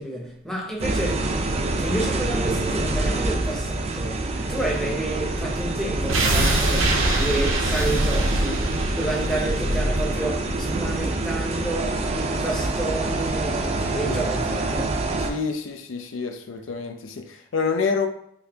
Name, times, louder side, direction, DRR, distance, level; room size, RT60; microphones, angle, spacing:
voice 1, 0.0-1.3 1.8-15.0, right 1 dB, 5° left, 0.7 m, -30 dB
sound 1, 0.8-15.3, right 2 dB, 30° right, 0.4 m, -26 dB
sound 2, 6.1-11.0 11.3-11.4, right 2 dB, 80° right, 0.6 m, -25 dB
voice 2, 15.2-18.1, left 5 dB, 75° left, 0.4 m, -28 dB
3.9 x 2.7 x 2.8 m
head